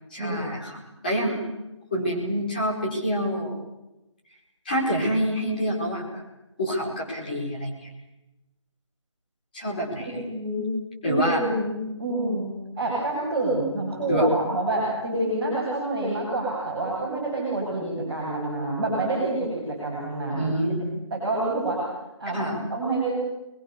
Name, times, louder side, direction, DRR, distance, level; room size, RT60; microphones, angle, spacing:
voice 1, 0.1-1.4 1.9-3.5 4.6-6.2 6.6-7.7 9.5-10.2 11.0-11.4 14.1-14.3 20.4-20.9 22.3-22.6, equal, 15° left, -4 dB, 4.9 m, -27 dB
voice 2, 10.0-10.7 11.0-20.5 21.1-21.8 22.2-23.1, right 2 dB, 5° right, -12 dB, 7.2 m, -27 dB
28.5 x 22.5 x 7.1 m, 0.98 s
figure-of-eight pair, 180°, 16 cm